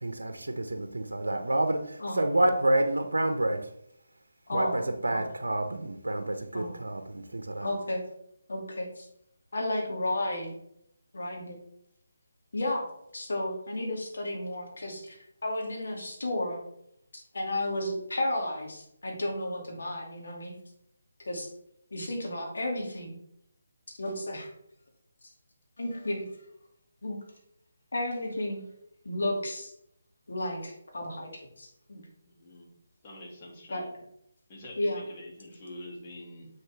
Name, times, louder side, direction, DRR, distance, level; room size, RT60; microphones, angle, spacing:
voice 1, 0.0-3.7 4.5-7.7, right 1 dB, 75° right, 7 dB, 0.8 m, -28 dB
voice 2, 4.5-4.8 5.1-5.2 6.5-6.7 7.6-8.0 8.5-9.1 9.5-10.5 11.1-11.6 12.5-12.8 13.1-15.2 15.4-16.6 17.1-20.5 21.3-21.5 21.9-23.1 24.0-24.5 25.8-26.2 27.0-27.2 27.9-28.6 29.0-29.7 30.3-32.0 33.7-33.8 34.8-35.0, left 1 dB, 65° left, 0 dB, 2.4 m, -32 dB
voice 3, 32.3-32.6 33.0-33.9 34.5-36.5, left 1 dB, 30° left, -1 dB, 2.4 m, -45 dB
7.3 x 6.4 x 3.4 m, 0.74 s
figure-of-eight pair, 150°, 0 cm